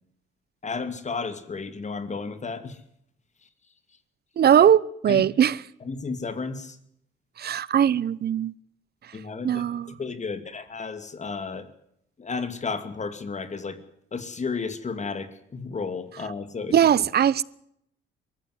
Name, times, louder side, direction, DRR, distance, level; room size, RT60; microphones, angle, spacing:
voice 1, 0.6-2.8 5.1-5.2 5.8-6.8 9.1-11.7 12.2-13.8 14.1-17.1, left 4 dB, 35° left, 2.6 m, -33 dB
voice 2, 4.4-5.6 7.4-8.5 9.4-10.0 16.7-17.4, right 9 dB, 55° right, 0.9 m, -20 dB
23.0 x 14.5 x 9.6 m
cardioid pair, 90°, 20 cm